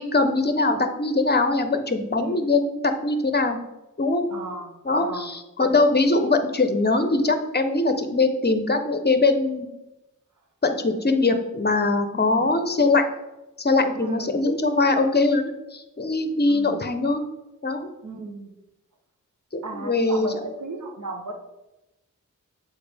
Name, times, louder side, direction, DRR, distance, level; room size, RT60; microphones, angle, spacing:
voice 1, 0.0-3.6 4.0-4.3 4.9-9.7 10.6-13.0 13.6-17.2 17.6-17.9 19.5-20.3, left 3 dB, 30° left, 7 dB, 0.7 m, -22 dB
voice 2, 2.1-2.5 4.3-5.4 12.1-12.5 13.9-14.4 16.5-16.8 18.0-18.5 19.6-21.3, right 2 dB, 65° right, 3 dB, 1.1 m, -35 dB
6.9 x 4.3 x 3.5 m, 0.97 s
wide cardioid pair, 65°, 32 cm